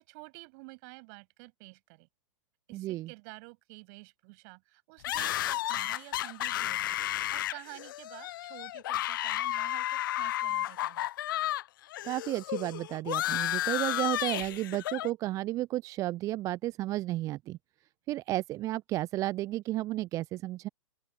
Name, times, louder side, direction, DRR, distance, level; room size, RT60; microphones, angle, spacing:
voice 1, 0.0-2.1 2.7-11.1, right 32 dB, 35° right, 7.7 m, -50 dB
voice 2, 2.7-3.1 12.0-17.6 18.1-20.7, right 16 dB, 20° right, 0.5 m, -33 dB
sound 1, 5.0-11.6 11.9-15.1, left 14 dB, 40° left, 0.4 m, -32 dB
open air
figure-of-eight pair, 115°, 17 cm